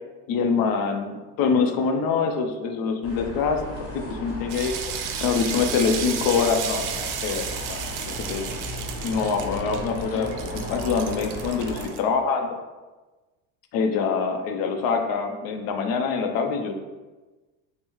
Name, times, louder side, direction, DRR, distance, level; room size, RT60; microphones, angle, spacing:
voice 1, 0.3-4.7 5.2-7.8 8.0-8.5 9.0-12.5 13.7-16.7, left 5 dB, 55° left, 5 dB, 0.6 m, -25 dB
sound 1, 3.0-11.9, equal, 35° left, 1.4 m, -35 dB
sound 2, 4.5-12.0, right 8 dB, 50° right, 0.5 m, -33 dB
5.3 x 2.1 x 3.1 m, 1.2 s
supercardioid pair, 110°, 41 cm